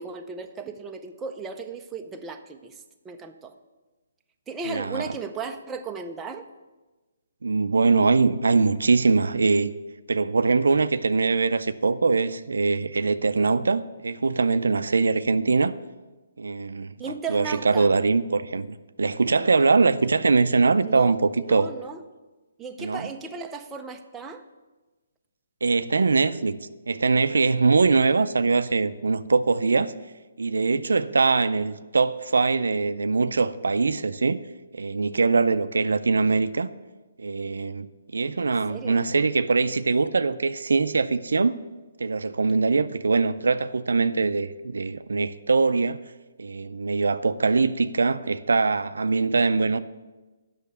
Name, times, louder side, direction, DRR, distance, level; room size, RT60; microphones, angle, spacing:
voice 1, 0.0-2.8 3.0-3.5 4.5-6.4 17.0-17.9 20.8-22.0 22.6-24.4 38.4-39.0, right 4 dB, 10° right, 0.5 m, -36 dB
voice 2, 4.6-5.2 7.4-9.7 10.1-15.7 16.4-17.0 17.3-21.7 22.8-23.1 25.6-26.6 26.9-29.9 30.4-34.4 34.7-36.7 37.2-41.6 42.0-46.0 46.4-49.8, right 4 dB, 85° right, 0.4 m, -22 dB
8.4 x 6.3 x 6.7 m
hypercardioid pair, 155°, 0 cm